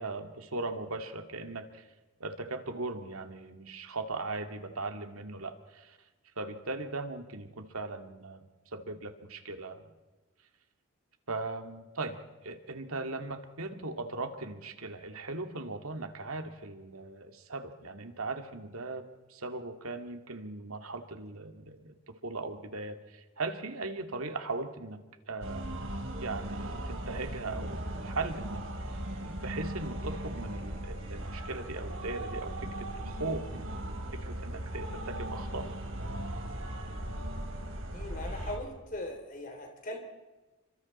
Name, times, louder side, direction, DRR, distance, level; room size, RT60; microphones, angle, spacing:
voice 1, 0.0-1.8 2.2-6.0 6.4-8.4 8.7-9.8 11.3-12.2 12.4-19.0 19.3-21.9 22.2-25.0 25.3-25.9 26.2-29.0 29.2-35.7, right 3 dB, 90° right, 6 dB, 2.2 m, -39 dB
sound 1, 25.4-38.6, right 1 dB, 70° right, 4.0 m, -38 dB
voice 2, 37.9-40.0, left 1 dB, 40° left, 4 dB, 3.3 m, -40 dB
29.5 x 25.0 x 4.3 m, 1.2 s
head